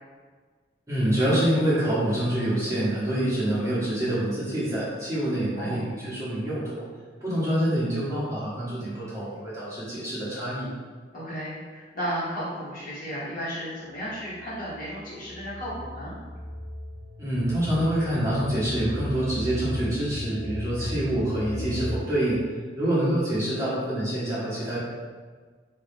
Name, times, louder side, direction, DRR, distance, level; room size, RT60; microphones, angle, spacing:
voice 1, 0.9-6.8 7.2-10.7 17.2-22.4 22.8-24.8, right 1 dB, 15° right, -10 dB, 1.2 m, -26 dB
voice 2, 11.1-16.1 20.8-21.0, equal, 50° left, -11 dB, 1.5 m, -34 dB
sound 1, 14.3-22.0, equal, 75° right, 0.6 m, -35 dB
2.8 x 2.7 x 3.4 m, 1.5 s
head